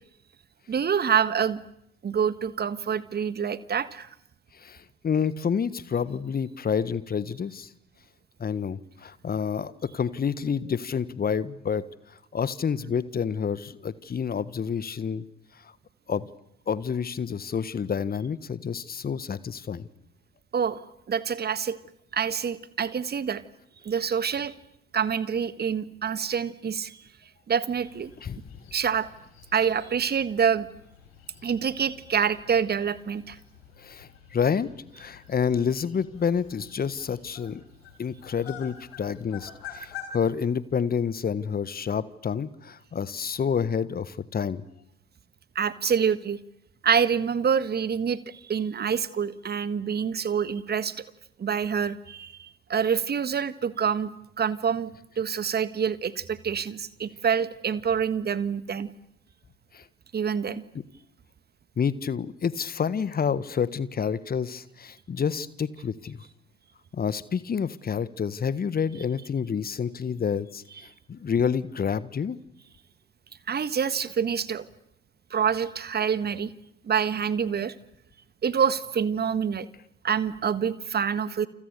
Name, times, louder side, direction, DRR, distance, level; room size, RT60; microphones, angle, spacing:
voice 1, 0.7-1.6 2.0-4.1 20.5-20.8 21.1-21.8 22.1-23.4 23.8-24.5 24.9-27.0 27.5-28.1 28.7-29.1 29.5-30.7 31.4-33.4 45.5-46.4 46.8-51.0 51.4-54.1 54.4-58.9 60.1-60.6 73.5-74.6 75.3-76.5 76.8-77.7 78.4-79.7 80.0-81.5, right 7 dB, 30° right, 15 dB, 1.6 m, -26 dB
voice 2, 5.0-7.7 8.4-11.8 12.3-15.2 16.1-16.3 16.7-19.8 28.2-28.4 33.8-34.7 35.0-37.6 38.0-44.6 59.7-59.8 61.8-66.2 66.9-70.6 71.1-72.4, left 6 dB, 30° left, 17 dB, 1.5 m, -28 dB
sound 1, 27.7-40.0, left 9 dB, 70° left, 5.8 m, -48 dB
29.5 x 29.0 x 6.9 m, 0.79 s
figure-of-eight pair, 55°, 31 cm